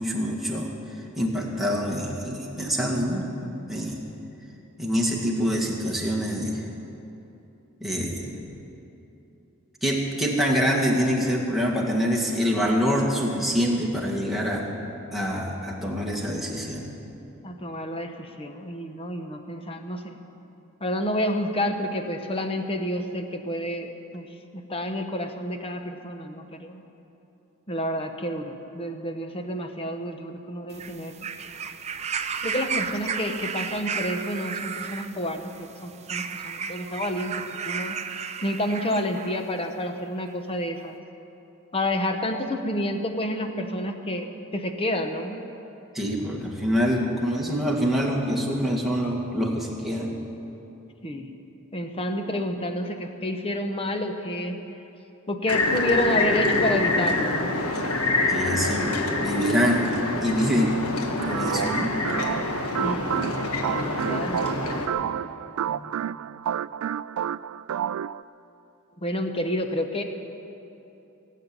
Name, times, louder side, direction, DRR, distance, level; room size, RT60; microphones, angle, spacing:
voice 1, 0.0-3.3 3.7-4.0 4.8-6.6 7.8-8.3 9.8-14.7 15.1-16.9 45.9-50.1 58.3-59.9 60.2-60.8 61.3-61.9 65.7-65.9, equal, ahead, -3 dB, 1.9 m, -25 dB
voice 2, 17.4-20.2 20.8-24.3 24.7-26.8 27.7-31.3 32.4-37.3 37.7-38.0 38.4-41.0 41.7-45.4 51.0-51.3 51.7-54.6 55.3-57.5 62.8-63.2 63.7-65.0 69.0-70.0, left 1 dB, 25° left, 6 dB, 1.0 m, -29 dB
sound 1, 30.7-39.4 40.3-40.4, right 6 dB, 30° right, 0.5 m, -33 dB
sound 2, 55.5-64.9, left 2 dB, 80° left, 1.4 m, -26 dB
sound 3, 61.2-68.2, right 9 dB, 80° right, 0.3 m, -30 dB
18.0 x 7.6 x 9.6 m, 2.9 s
head